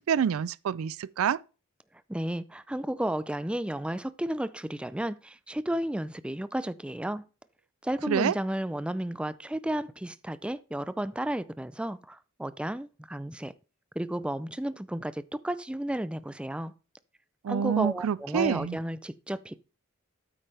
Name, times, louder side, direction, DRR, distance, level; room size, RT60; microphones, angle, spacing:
voice 1, 0.0-1.4 8.1-8.3 17.4-18.8, right 7 dB, 85° right, 0.4 m, -27 dB
voice 2, 2.1-7.3 7.8-13.5 14.0-16.7 17.5-19.6, right 1 dB, 5° right, 0.4 m, -33 dB
8.8 x 8.6 x 3.3 m
head